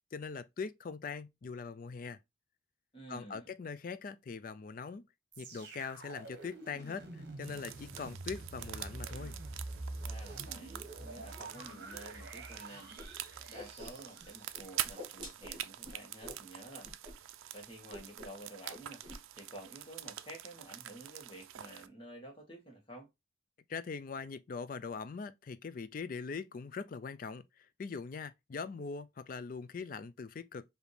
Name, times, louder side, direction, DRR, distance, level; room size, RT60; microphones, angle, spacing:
voice 1, 0.1-2.2 3.1-5.0 5.4-9.4 23.7-30.6, left 5 dB, 45° left, 0.3 m, -42 dB
voice 2, 2.9-3.5 10.0-12.9 13.5-23.1, right 1 dB, 25° left, 1.4 m, -51 dB
sound 1, 5.3-15.4 16.0-16.1, right 2 dB, 55° right, 1.1 m, -47 dB
sound 2, 7.4-21.9, right 13 dB, 90° right, 0.4 m, -46 dB
Whoosh swoosh swish, 13.0-13.1 13.3-14.3 14.5-16.4 16.8-17.1 17.4-17.6 17.9-18.4 18.7-19.2, left 1 dB, 25° right, 1.6 m, -48 dB
5.1 x 2.7 x 3.2 m
head